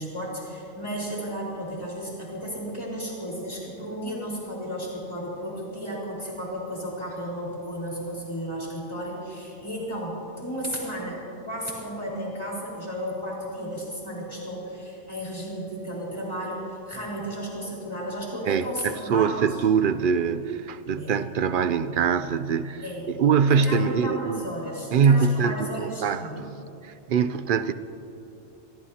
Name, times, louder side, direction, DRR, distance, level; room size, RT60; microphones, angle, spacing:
voice 1, 0.0-19.6 21.0-21.2 22.8-23.1 23.5-26.5, equal, 20° left, -5 dB, 4.6 m, -33 dB
voice 2, 18.5-24.4 24.9-26.5 26.8-27.7, right 6 dB, 60° right, 13 dB, 0.5 m, -23 dB
25.5 x 17.0 x 2.9 m, 2.8 s
omnidirectional pair, 1.3 m